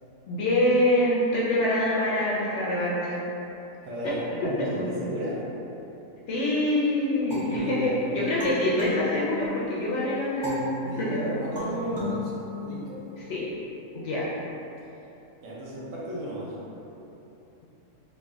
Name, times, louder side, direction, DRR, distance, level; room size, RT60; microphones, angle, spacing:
voice 1, 0.3-3.2 4.0-4.1 4.4-4.5 4.8-4.9 6.3-10.6 11.0-11.1 13.3-13.5 13.9-14.3, left 1 dB, 65° left, -7 dB, 0.8 m, -25 dB
voice 2, 3.8-5.5 7.4-8.3 10.9-12.3 12.6-13.0 14.2-14.3 15.4-16.6, right 1 dB, 70° right, -6 dB, 1.0 m, -34 dB
sound 1, 7.3-9.8 10.4-13.2, left 2 dB, 25° right, 0.5 m, -36 dB
4.1 x 2.5 x 2.3 m, 2.9 s
omnidirectional pair, 1.5 m